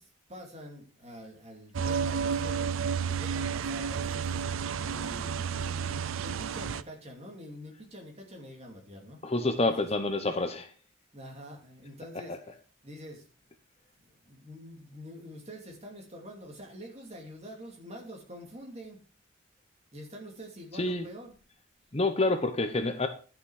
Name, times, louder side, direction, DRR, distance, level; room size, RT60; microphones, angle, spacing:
voice 1, 0.0-4.4 4.8-9.2 9.6-9.9 11.1-12.4 12.8-13.3 14.2-19.0 19.9-21.4, equal, 30° right, 1 dB, 2.5 m, -46 dB
sound 1, 1.7-6.8, right 6 dB, 85° right, 0.5 m, -31 dB
voice 2, 9.2-10.7 12.3-12.4 20.7-21.1 21.9-23.1, left 2 dB, 30° left, 8 dB, 0.7 m, -28 dB
11.0 x 6.0 x 4.8 m, 0.38 s
head